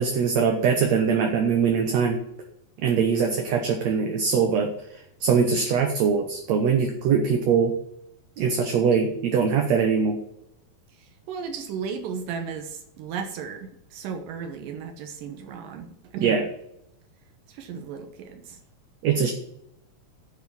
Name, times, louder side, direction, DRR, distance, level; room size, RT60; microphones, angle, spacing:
voice 1, 0.0-2.2 2.8-4.7 5.2-7.7 8.4-10.2 16.2-16.4 19.0-19.3, right 6 dB, 65° right, 3 dB, 2.0 m, -22 dB
voice 2, 11.0-16.5 17.5-18.6, right 6 dB, 85° right, 5 dB, 2.7 m, -35 dB
10.5 x 5.1 x 6.9 m, 0.78 s
omnidirectional pair, 3.8 m